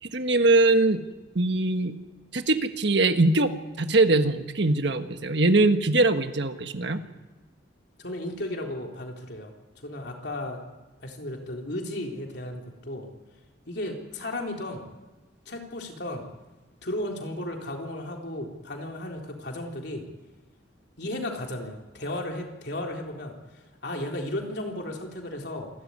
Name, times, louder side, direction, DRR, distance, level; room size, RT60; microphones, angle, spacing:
voice 1, 0.1-1.0 1.3-1.9 2.3-7.0, right 2 dB, 65° right, 8 dB, 1.5 m, -22 dB
voice 2, 8.0-9.5 9.8-10.6 11.0-13.1 13.7-14.9 15.5-16.2 16.8-20.1 21.0-25.7, left 1 dB, 60° left, 1 dB, 3.8 m, -34 dB
27.5 x 13.0 x 9.7 m, 1.2 s
head